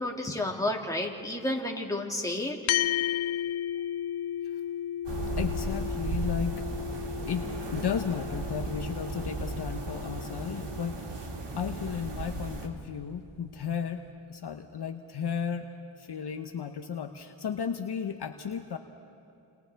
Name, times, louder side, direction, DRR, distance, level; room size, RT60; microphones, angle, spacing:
voice 1, 0.0-2.6, left 1 dB, 5° left, 0 dB, 2.3 m, -31 dB
sound 1, 2.7-11.4, left 11 dB, 85° left, 0.6 m, -34 dB
sound 2, 5.0-12.7, right 2 dB, 60° right, 2.5 m, -35 dB
voice 2, 5.4-6.6 7.3-7.4 7.7-14.0 14.3-15.7 16.0-18.8, left 7 dB, 55° left, 6 dB, 0.9 m, -34 dB
29.5 x 27.5 x 3.5 m, 2.8 s
cardioid pair, 75°, 48 cm